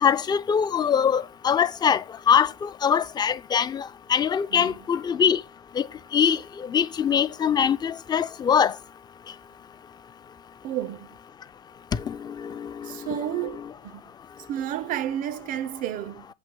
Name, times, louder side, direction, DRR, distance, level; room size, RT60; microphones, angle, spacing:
voice 1, 0.0-3.8 4.1-5.4 5.8-5.9 6.1-6.4 6.7-8.7 12.1-12.7 13.1-13.2, left 7 dB, 20° left, 0.3 m, -23 dB
voice 2, 10.6-11.2 12.8-14.0 14.5-16.3, right 11 dB, 45° right, 0.4 m, -31 dB
7.7 x 2.7 x 5.2 m
hypercardioid pair, 90°, 19 cm